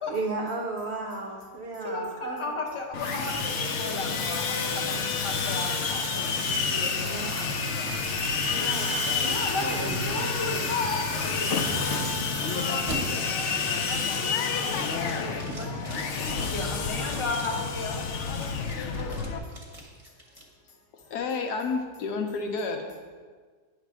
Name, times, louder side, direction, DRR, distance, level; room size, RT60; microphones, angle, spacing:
voice 1, 0.1-2.5 7.0-7.6 8.5-9.4 9.6-9.9, right 3 dB, 60° right, 0 dB, 0.7 m, -34 dB
voice 2, 1.8-3.3 3.7-4.4 4.9-6.3 6.7-7.9 9.1-9.6 10.1-11.8 12.5-12.9 13.2-13.5 13.9-14.3 14.7-15.7 16.2-18.0, left 3 dB, 30° left, 1 dB, 0.6 m, -34 dB
Sawing, 2.9-19.4, left 5 dB, 65° left, 0.7 m, -29 dB
sound 1, 3.0-13.1, right 9 dB, 75° right, 1.1 m, -41 dB
sound 2, 6.1-12.4 12.9-13.0 13.5-13.8 14.2-14.7 15.0-18.0 18.4-20.4, right 1 dB, 25° right, 1.0 m, -41 dB
voice 3, 21.1-22.9, left 4 dB, 80° left, 3 dB, 1.4 m, -30 dB
9.0 x 3.3 x 6.1 m, 1.5 s
omnidirectional pair, 1.7 m